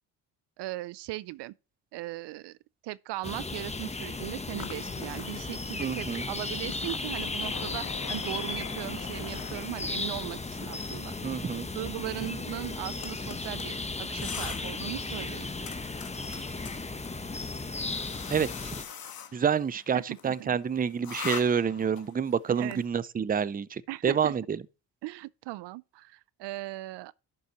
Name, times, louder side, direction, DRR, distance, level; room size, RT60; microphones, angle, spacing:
voice 1, 0.6-1.5 1.9-2.6 2.8-11.1 11.7-15.5 19.9-20.6 22.5-22.8 23.9-24.3 25.0-27.1, right 18 dB, 65° right, 0.5 m, -38 dB
sound 1, 3.2-18.8, left 3 dB, 15° left, 1.0 m, -35 dB
sound 2, 4.5-22.9, left 8 dB, 50° left, 1.4 m, -45 dB
voice 2, 5.8-6.2 11.2-11.7 18.3-18.5 19.3-24.4, right 7 dB, 20° right, 0.5 m, -28 dB
11.5 x 5.5 x 3.0 m
supercardioid pair, 55°, 45 cm